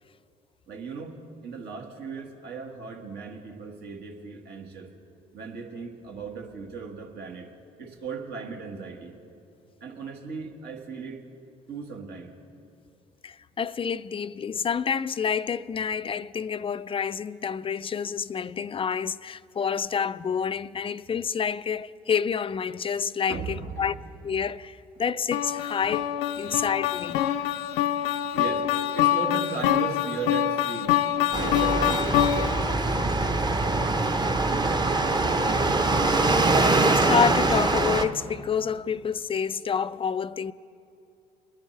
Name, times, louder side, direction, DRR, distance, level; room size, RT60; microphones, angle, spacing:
voice 1, 0.7-1.2 1.4-4.9 5.3-7.5 7.8-9.2 9.8-11.2 11.7-12.4 23.3-23.9 26.4-26.6 28.3-28.7 28.9-30.9 31.4-34.0 34.5-35.9, right 5 dB, 60° right, 1.7 m, -37 dB
voice 2, 13.2-24.0 24.2-26.1 26.4-27.2 36.8-40.5, left 7 dB, 30° left, 0.4 m, -28 dB
sound 1, 25.3-32.7, left 11 dB, 80° left, 0.5 m, -25 dB
sound 2, 31.3-38.0, right 2 dB, 20° right, 0.9 m, -23 dB
22.0 x 10.5 x 3.3 m
hypercardioid pair, 55°, 19 cm